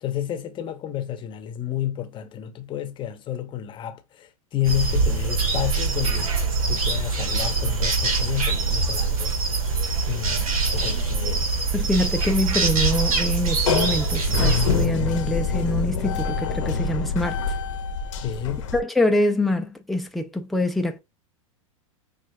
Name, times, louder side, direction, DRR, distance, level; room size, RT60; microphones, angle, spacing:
voice 1, 0.0-6.3 6.7-9.3 10.1-11.5 18.2-18.7, left 11 dB, 25° left, 0.8 m, -30 dB
sound 1, 4.6-14.9, right 4 dB, 80° right, 1.3 m, -24 dB
sound 2, 10.4-18.8, left 5 dB, 65° left, 0.8 m, -27 dB
voice 2, 11.7-17.4 18.7-21.0, left 1 dB, ahead, 0.5 m, -25 dB
6.2 x 2.5 x 2.2 m
hypercardioid pair, 115°, 18 cm